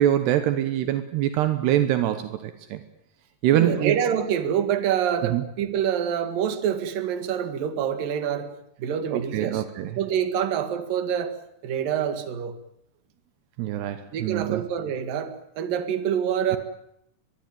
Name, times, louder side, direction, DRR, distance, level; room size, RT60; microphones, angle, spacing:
voice 1, 0.0-2.8 3.4-4.0 5.2-5.4 9.1-10.0 13.6-14.6, right 12 dB, 80° right, 10 dB, 3.2 m, -24 dB
voice 2, 3.5-8.5 8.8-9.6 9.9-11.3 11.6-12.6 14.1-16.6, right 9 dB, 60° right, 9 dB, 3.5 m, -26 dB
23.0 x 21.5 x 9.2 m, 0.77 s
omnidirectional pair, 4.8 m